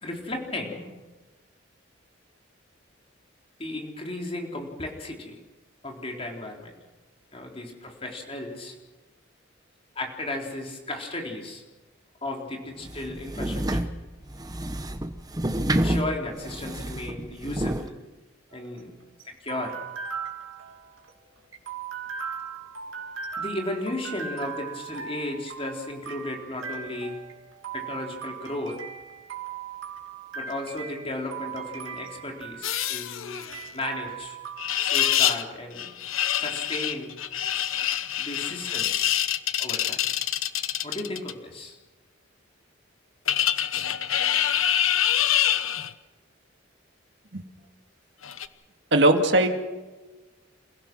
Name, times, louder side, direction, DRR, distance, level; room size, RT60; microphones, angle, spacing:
voice 1, 0.0-0.9 3.6-5.4 5.8-6.7 7.3-8.8 10.0-11.6 12.2-13.9 15.7-18.0 18.5-18.9 19.3-19.8 23.4-27.2 27.7-28.8 30.3-33.4 33.7-34.4 34.8-35.9 36.4-37.1 38.2-39.1 39.6-40.0 40.8-41.8, left 2 dB, 30° left, 1 dB, 3.9 m, -34 dB
sound 1, 12.8-17.9, right 1 dB, 20° right, 1.0 m, -29 dB
sound 2, 18.5-35.2, right 7 dB, 80° right, 3.0 m, -39 dB
sound 3, 32.6-33.7 34.6-35.4 35.8-41.3 43.3-45.9 48.2-48.5, left 11 dB, 85° left, 1.0 m, -26 dB
voice 2, 48.9-49.5, right 1 dB, 60° right, 5 dB, 2.1 m, -19 dB
28.5 x 16.5 x 6.3 m, 1.2 s
head